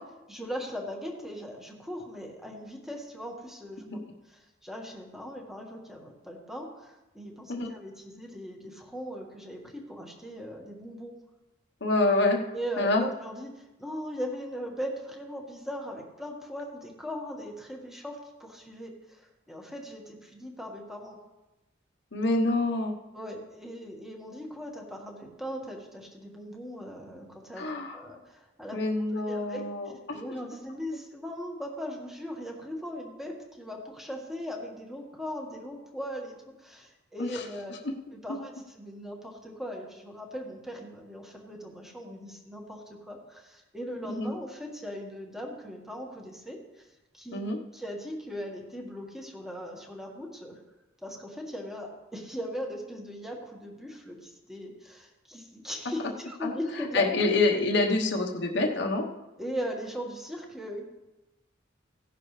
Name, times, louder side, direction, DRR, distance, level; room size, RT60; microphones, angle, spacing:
voice 1, 0.3-11.1 12.5-21.2 23.1-28.8 29.3-29.6 30.1-37.8 38.2-46.9 47.1-47.4 47.7-50.6 51.0-57.2 59.4-60.8, equal, ahead, 0 dB, 1.6 m, -39 dB
voice 2, 11.8-12.4 12.8-13.0 22.1-22.9 27.6-28.0 28.7-30.2 37.2-37.4 38.3-38.4 44.1-44.3 47.3-47.6 56.4-56.5 56.9-59.1, left 2 dB, 65° left, 1 dB, 1.1 m, -26 dB
16.0 x 11.0 x 3.3 m, 1.0 s
head